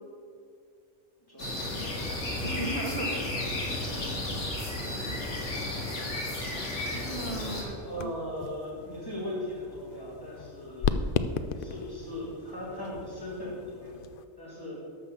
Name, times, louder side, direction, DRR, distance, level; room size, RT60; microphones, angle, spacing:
voice 1, 1.3-1.6 3.8-4.2 7.6-11.0 11.5-13.9 14.4-14.8, left 1 dB, 20° left, -6 dB, 3.3 m, -38 dB
sound 1, 1.4-7.6, left 1 dB, 90° left, 2.3 m, -33 dB
voice 2, 2.3-3.2 3.8-4.0 4.9-5.2 6.8-8.1, right 2 dB, 65° right, 3 dB, 1.2 m, -37 dB
sound 2, 6.5-14.3, left 5 dB, 60° left, 0.7 m, -36 dB
12.5 x 5.5 x 7.2 m, 2.3 s
omnidirectional pair, 1.2 m